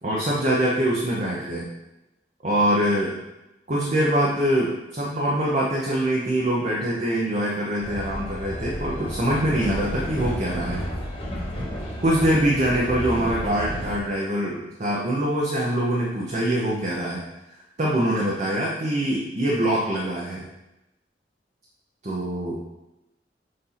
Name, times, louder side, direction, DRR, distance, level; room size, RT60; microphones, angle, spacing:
voice 1, 0.0-1.7 2.4-3.2 3.7-10.8 12.0-17.2 17.8-20.5 22.0-22.6, right 1 dB, 40° right, -4 dB, 0.8 m, -24 dB
Train, 7.8-14.0, equal, 35° left, 1.3 m, -32 dB
6.7 x 2.7 x 5.7 m, 0.97 s
head